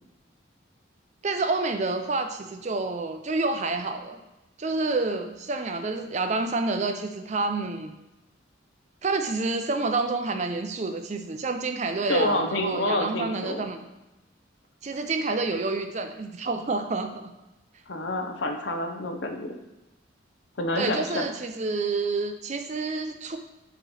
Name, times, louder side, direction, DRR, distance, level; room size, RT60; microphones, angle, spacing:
voice 1, 1.2-4.2 4.6-8.0 9.0-13.8 14.8-17.3 20.8-23.4, right 3 dB, 35° right, 7 dB, 0.5 m, -28 dB
voice 2, 12.1-13.6 17.9-19.6 20.6-21.3, left 1 dB, 65° left, 4 dB, 0.7 m, -28 dB
5.5 x 3.1 x 5.5 m, 0.98 s
head